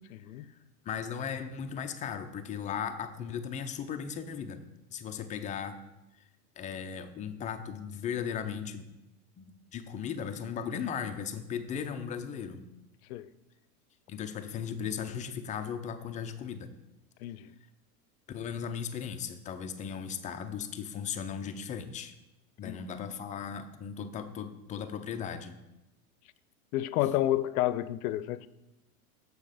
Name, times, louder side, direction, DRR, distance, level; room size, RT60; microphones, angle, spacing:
voice 1, 0.1-0.5 13.1-13.3 17.2-17.5 22.6-22.8 26.7-28.5, left 14 dB, 70° left, 0.6 m, -30 dB
voice 2, 0.8-4.6 4.9-5.8 6.6-8.9 9.4-12.6 14.1-16.7 18.3-22.1 22.6-25.6, left 7 dB, 20° left, 0.4 m, -37 dB
7.1 x 6.6 x 5.0 m
hypercardioid pair, 120°, 46 cm